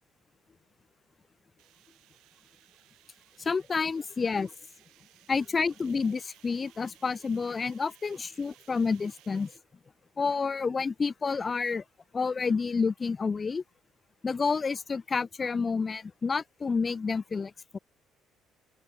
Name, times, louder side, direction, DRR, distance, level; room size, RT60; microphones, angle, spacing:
sound 1, 1.6-9.6, right 17 dB, 80° right, 3.3 m, -60 dB
voice 1, 3.4-4.5 5.3-9.5 10.2-11.8 12.1-13.6 14.2-17.8, left 5 dB, 20° left, 0.6 m, -29 dB
open air
cardioid pair, 155°, 0 cm